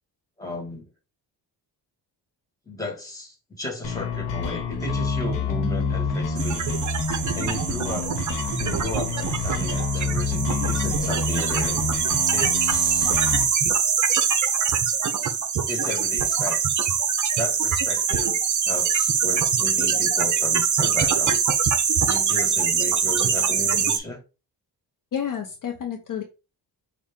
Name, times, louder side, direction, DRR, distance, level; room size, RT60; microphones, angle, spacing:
voice 1, 0.4-0.9 2.7-6.8 7.3-8.2 8.6-11.8 12.3-13.1 15.2-15.4 15.7-16.6 17.4-18.4 18.7-21.4 22.0-24.2, left 2 dB, 10° left, 1.9 m, -34 dB
sound 1, 3.8-13.4, left 4 dB, 85° left, 1.2 m, -28 dB
sound 2, 6.4-24.0, right 7 dB, 45° right, 0.7 m, -23 dB
voice 2, 25.1-26.2, left 8 dB, 50° left, 0.8 m, -30 dB
5.5 x 2.5 x 3.7 m
cardioid pair, 95°, 42 cm